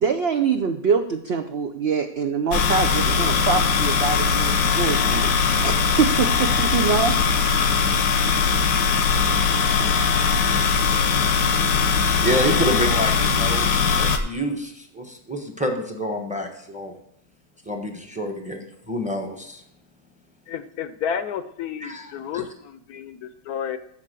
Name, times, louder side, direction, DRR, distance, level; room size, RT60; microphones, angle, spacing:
voice 1, 0.0-5.3 5.6-7.1, right 6 dB, 75° right, 7 dB, 0.5 m, -24 dB
sound 1, 2.5-14.2, left 5 dB, 90° left, 1.5 m, -20 dB
voice 2, 12.2-16.9 17.7-19.6 21.8-22.4, equal, 5° right, 4 dB, 0.8 m, -28 dB
voice 3, 20.5-23.8, left 8 dB, 70° left, 12 dB, 1.0 m, -31 dB
8.2 x 6.7 x 6.7 m, 0.72 s
omnidirectional pair, 1.8 m